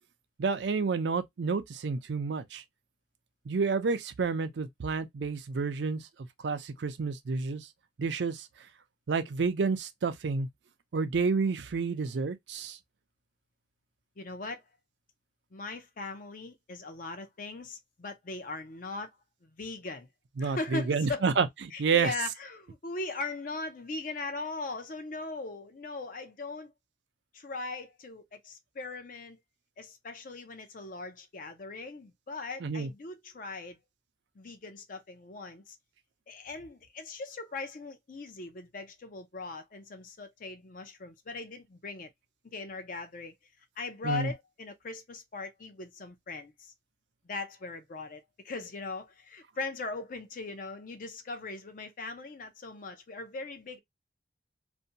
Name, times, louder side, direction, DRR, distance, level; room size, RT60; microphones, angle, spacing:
voice 1, 0.4-2.6 3.5-7.7 8.0-8.5 9.1-10.5 10.9-12.8 20.4-21.5 21.8-22.1 32.6-32.9 44.0-44.3, right 4 dB, 75° right, 0.4 m, -29 dB
voice 2, 14.2-14.6 15.5-19.1 19.4-20.1 20.4-21.2 21.7-26.7 27.3-29.4 29.8-33.8 34.4-35.8 36.3-42.1 42.4-43.3 43.8-46.7 47.2-53.8, left 3 dB, 50° left, 0.6 m, -39 dB
2.6 x 2.2 x 2.6 m
head